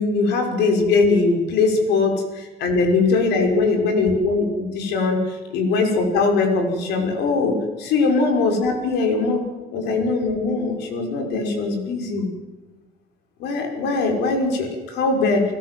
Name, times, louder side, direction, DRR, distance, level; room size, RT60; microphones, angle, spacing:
voice 1, 0.0-2.1 2.6-12.3 13.4-15.4, left 3 dB, 85° left, 4 dB, 5.7 m, -21 dB
29.5 x 16.5 x 7.8 m, 1.2 s
cardioid pair, 110°, 17 cm